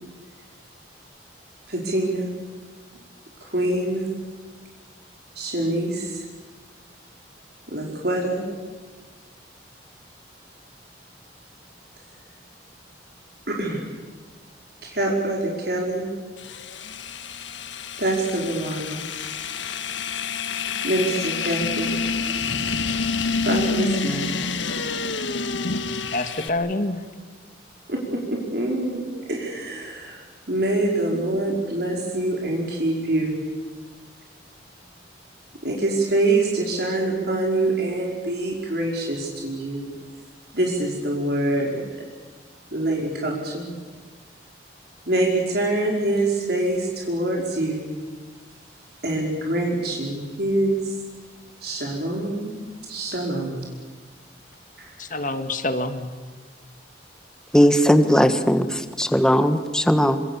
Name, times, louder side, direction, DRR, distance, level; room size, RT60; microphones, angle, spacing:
voice 1, 1.7-2.3 3.4-4.1 5.3-6.2 7.7-8.4 13.5-14.0 14.8-16.1 18.0-19.0 20.8-22.0 23.4-24.4 27.9-30.2 30.5-33.4 35.6-39.9 40.5-41.8 42.7-43.7 45.1-47.9 49.0-50.9 51.6-53.7 54.8-55.0, right 2 dB, 55° right, -1 dB, 5.0 m, -25 dB
sound 1, 16.4-26.5, left 4 dB, 85° left, 1.7 m, -28 dB
voice 2, 26.1-27.1 55.0-56.1, left 2 dB, 45° left, 9 dB, 1.9 m, -26 dB
voice 3, 57.5-60.2, equal, 5° left, 9 dB, 1.4 m, -18 dB
28.0 x 26.5 x 7.3 m, 1.4 s
head